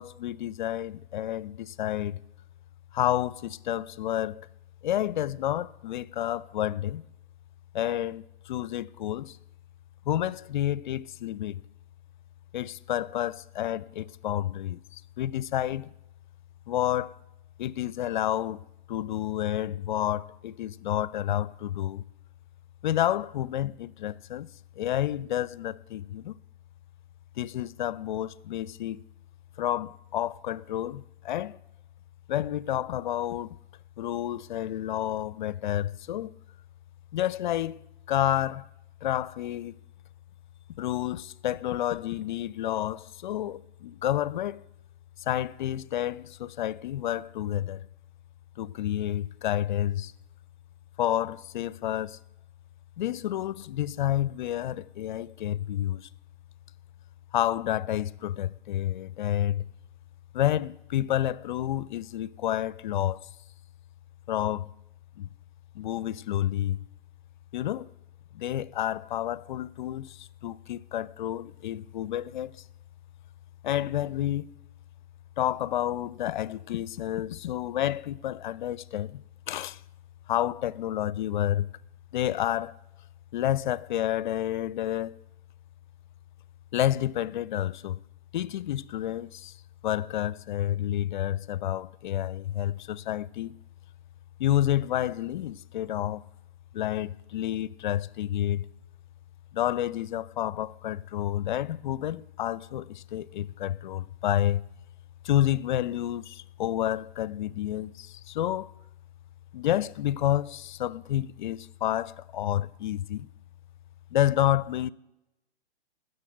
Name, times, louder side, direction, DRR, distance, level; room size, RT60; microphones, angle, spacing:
voice 1, 0.0-2.2 2.9-4.5 4.8-7.0 7.7-9.4 10.1-11.6 12.5-15.9 16.7-17.2 17.6-22.0 22.8-24.5 24.8-26.4 27.4-29.0 29.6-31.6 32.3-33.6 34.0-36.3 37.1-38.7 39.0-39.7 40.8-44.6 45.2-47.9 48.6-50.1 51.0-52.2 53.0-56.1 57.3-59.6 60.3-63.3 64.3-64.7 65.2-65.3 65.7-66.8 67.5-67.9 68.3-72.5 73.6-74.5 75.4-79.8 80.3-81.7 82.1-82.8 83.3-85.2 86.7-88.0 88.3-89.5 89.8-93.6 94.4-96.2 96.7-98.7 99.5-104.6 105.2-108.7 109.5-113.3 114.1-114.9, left 12 dB, 50° left, 0.5 m, -29 dB
15.5 x 6.7 x 7.8 m
hypercardioid pair, 130°, 30 cm